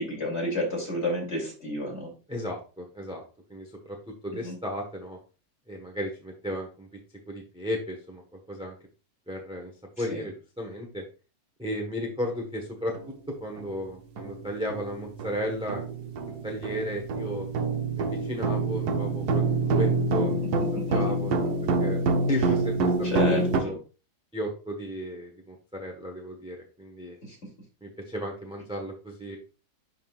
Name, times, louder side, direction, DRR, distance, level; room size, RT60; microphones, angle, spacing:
voice 1, 0.0-2.1 4.3-4.5 10.1-10.2 20.9-21.0 23.0-23.8 27.3-27.4, left 1 dB, 40° left, -2 dB, 3.2 m, -31 dB
voice 2, 2.3-3.2 3.5-4.0 4.2-5.2 5.7-6.9 7.3-8.2 8.5-8.8 9.3-9.7 10.0-11.0 11.6-12.9 13.4-15.8 16.3-17.5 18.0-21.5 21.8-22.0 22.3-22.9 23.2-23.8 24.3-27.2 27.8-29.4, equal, 5° right, 1 dB, 1.0 m, -34 dB
sound 1, 12.9-13.1 13.6-13.7 14.2-23.6, right 3 dB, 70° right, 1.3 m, -27 dB
11.0 x 3.9 x 2.4 m, 0.34 s
omnidirectional pair, 1.8 m